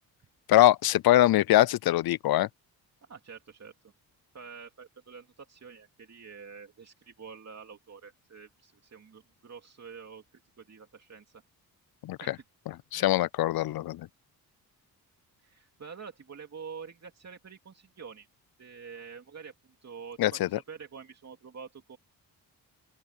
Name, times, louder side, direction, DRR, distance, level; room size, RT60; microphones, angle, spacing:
voice 1, 0.5-2.5 12.0-12.4 12.9-14.1 20.2-20.6, left 14 dB, 65° left, 0.6 m, -23 dB
voice 2, 3.1-3.7 4.3-11.4 12.2-12.4 12.9-13.2 15.4-18.3 18.6-22.0, right 6 dB, 40° right, 2.8 m, -47 dB
open air
cardioid pair, 80°, 39 cm